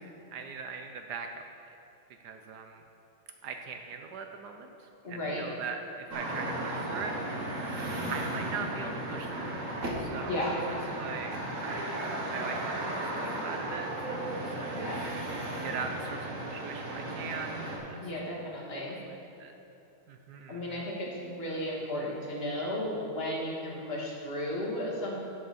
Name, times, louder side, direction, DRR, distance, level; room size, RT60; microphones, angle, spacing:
voice 1, 0.3-1.4 2.2-2.8 3.4-4.7 5.1-7.4 8.1-9.6 10.0-10.3 11.0-15.2 15.6-18.0 19.1-19.5 20.1-20.9, right 5 dB, 75° right, 5 dB, 0.9 m, -41 dB
voice 2, 5.0-5.4 10.2-10.6 14.7-15.0 18.0-19.0 20.5-25.2, left 1 dB, 30° left, -4 dB, 1.8 m, -34 dB
sound 1, 6.1-17.8, right 1 dB, 40° right, 1.4 m, -35 dB
11.5 x 7.9 x 4.1 m, 2.8 s
omnidirectional pair, 2.3 m